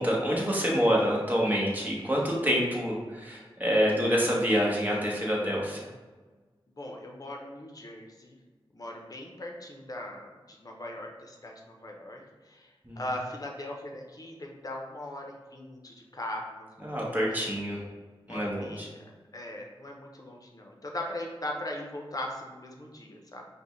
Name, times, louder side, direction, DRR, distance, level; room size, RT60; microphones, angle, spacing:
voice 1, 0.0-5.8 12.8-13.0 16.8-17.8 18.3-18.9, equal, 20° right, -3 dB, 1.1 m, -27 dB
voice 2, 6.8-8.4 8.7-17.0 18.3-23.4, left 1 dB, 40° left, 1 dB, 0.7 m, -40 dB
5.1 x 2.2 x 3.1 m, 1.3 s
wide cardioid pair, 60°, 9 cm